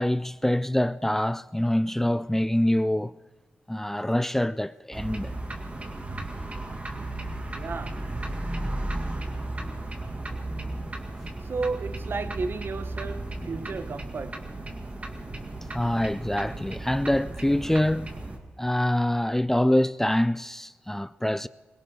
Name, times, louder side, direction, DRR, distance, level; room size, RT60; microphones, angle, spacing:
voice 1, 0.0-3.1 3.7-5.3 8.9-9.0 15.7-18.1 18.6-21.5, left 1 dB, 10° left, 0.4 m, -25 dB
sound 1, 4.9-18.4, right 2 dB, 35° right, 2.3 m, -35 dB
voice 2, 7.5-8.1 11.4-14.5, right 4 dB, 55° right, 1.0 m, -33 dB
22.0 x 17.0 x 3.8 m
supercardioid pair, 50°, 4 cm